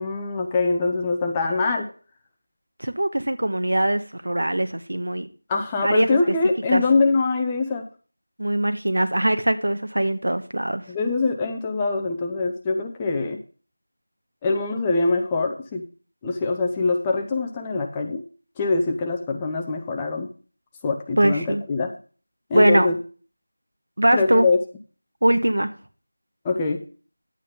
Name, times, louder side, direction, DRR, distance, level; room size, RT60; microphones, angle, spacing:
voice 1, 0.0-1.9 5.5-7.8 10.9-13.4 14.4-15.8 16.2-18.2 18.6-20.3 20.8-21.4 21.7-21.9 22.5-23.0 24.1-24.6 26.4-26.8, left 3 dB, 10° left, 2 dB, 0.5 m, -23 dB
voice 2, 2.8-5.3 5.8-6.2 6.7-6.8 8.4-10.8 21.2-21.6 22.5-22.9 24.0-24.5 25.2-25.7, right 1 dB, 70° right, 9 dB, 1.3 m, -21 dB
10.5 x 8.7 x 3.7 m, 0.38 s
figure-of-eight pair, 175°, 0 cm